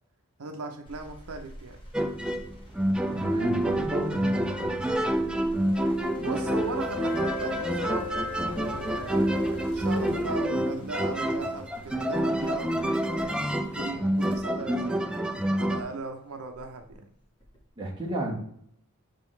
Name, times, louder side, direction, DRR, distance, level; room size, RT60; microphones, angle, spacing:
voice 1, 0.4-1.8 6.2-15.0 15.6-17.0, right 3 dB, 75° right, 5 dB, 0.7 m, -38 dB
sound 1, 0.8-15.9 16.5-17.7, equal, 20° left, 1.4 m, -48 dB
sound 2, 1.9-15.8, right 1 dB, 5° right, 0.4 m, -28 dB
voice 2, 3.1-4.8 17.8-18.4, right 1 dB, 20° right, -2 dB, 1.5 m, -33 dB
Wind instrument woodwind instrument, 5.6-9.8, left 6 dB, 80° left, 1.4 m, -39 dB
6.3 x 5.2 x 3.2 m, 0.67 s
head